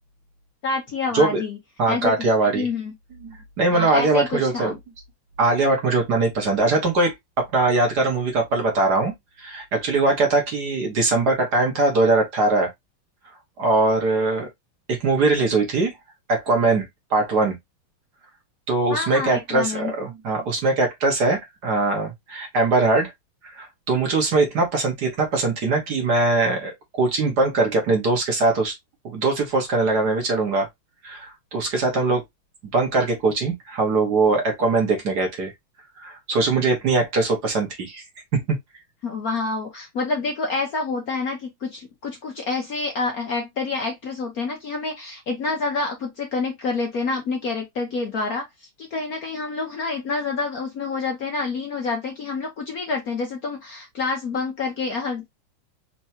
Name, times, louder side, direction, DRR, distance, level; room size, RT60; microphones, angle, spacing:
voice 1, 0.6-1.6 1.9-2.3 2.5-2.9 3.7-4.8 18.9-19.9 39.0-55.3, left 3 dB, 55° left, 1.1 m, -28 dB
voice 2, 1.8-2.7 3.2-4.7 5.4-9.1 9.4-12.7 13.6-14.5 14.9-15.9 16.3-17.6 18.7-23.1 23.4-28.7 29.0-30.7 31.0-32.2 32.7-35.5 36.0-38.0 38.3-38.6, right 3 dB, 50° right, 1.8 m, -21 dB
4.5 x 3.0 x 2.8 m
omnidirectional pair, 2.3 m